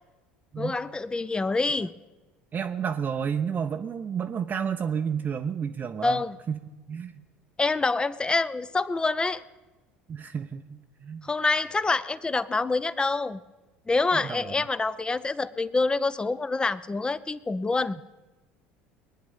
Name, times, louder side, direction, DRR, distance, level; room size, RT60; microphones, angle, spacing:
voice 1, 0.6-1.9 6.0-6.4 7.6-9.4 11.2-13.4 13.9-18.0, left 3 dB, 15° left, 16 dB, 0.7 m, -26 dB
voice 2, 2.5-6.2 6.5-6.6 6.9-7.2 10.1-11.2 14.1-14.5, right 7 dB, 35° right, 4 dB, 0.8 m, -31 dB
22.5 x 9.9 x 5.6 m, 1.1 s
hypercardioid pair, 70°, 5 cm